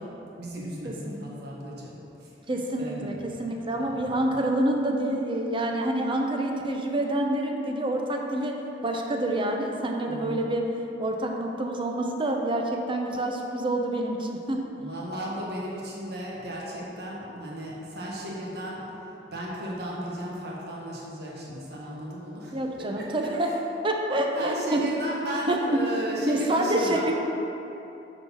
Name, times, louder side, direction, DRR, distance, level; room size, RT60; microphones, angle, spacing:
voice 1, 0.0-2.3 2.8-3.5 3.9-4.1 10.1-10.4 14.8-18.9 19.3-23.5 24.3-27.1, equal, 65° right, -4 dB, 1.2 m, -35 dB
voice 2, 0.8-1.2 2.5-10.7 11.0-14.7 22.5-23.6 23.8-24.9 25.5-27.1, right 1 dB, 30° right, 2 dB, 0.6 m, -27 dB
5.5 x 3.8 x 6.0 m, 3.0 s
head